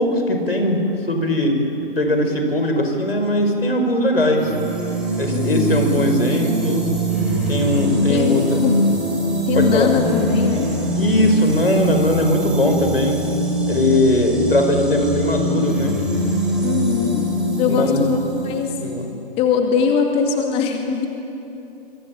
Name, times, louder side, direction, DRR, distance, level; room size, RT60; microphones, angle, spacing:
voice 1, 0.0-4.5 5.2-6.8 7.5-8.6 9.6-9.9 10.9-13.2 13.7-16.0 17.7-18.1 18.8-19.1, left 1 dB, 85° left, 4 dB, 5.7 m, -19 dB
sound 1, 4.3-19.0, right 1 dB, 5° right, 5.1 m, -23 dB
voice 2, 5.3-5.9 8.1-8.8 9.5-10.7 16.6-17.3 17.5-18.2 18.4-18.8 19.4-21.1, left 6 dB, 20° left, 3 dB, 2.3 m, -21 dB
27.0 x 24.5 x 8.9 m, 2.9 s
figure-of-eight pair, 130°, 29 cm